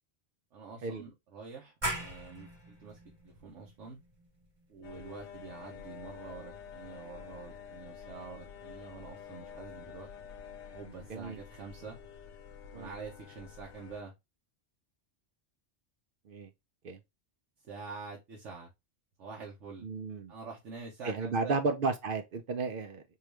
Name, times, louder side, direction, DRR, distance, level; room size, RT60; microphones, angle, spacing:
voice 1, 0.5-4.0 4.7-10.1 10.7-12.0 12.7-14.1 17.6-18.7 19.2-19.9 20.3-21.6, right 4 dB, 85° right, 1.2 m, -46 dB
sound 1, 1.8-7.2, right 1 dB, 25° right, 0.9 m, -42 dB
sound 2, 4.8-14.0, left 7 dB, 75° left, 0.9 m, -49 dB
voice 2, 19.8-20.3 21.0-23.0, right 4 dB, 60° right, 0.6 m, -33 dB
4.5 x 2.4 x 3.1 m
omnidirectional pair, 1.2 m